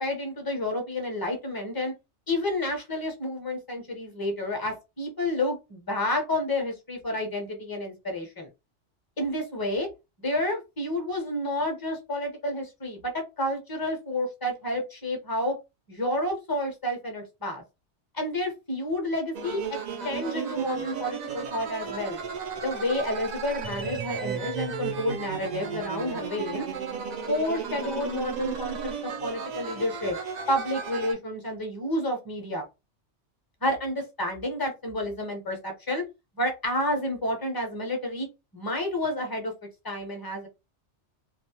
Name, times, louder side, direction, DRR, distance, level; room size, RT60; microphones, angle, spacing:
voice 1, 0.0-1.9 2.3-8.5 9.2-9.9 10.2-15.5 15.9-17.6 18.1-19.8 20.0-22.2 22.6-26.7 27.3-30.2 30.5-32.7 33.6-36.0 36.4-38.3 38.5-39.5 39.8-40.5, left 1 dB, 25° left, 3 dB, 0.5 m, -30 dB
sound 1, 19.3-31.1, right 6 dB, 65° right, 0.4 m, -34 dB
2.3 x 2.0 x 2.8 m, 0.25 s
omnidirectional pair, 1.2 m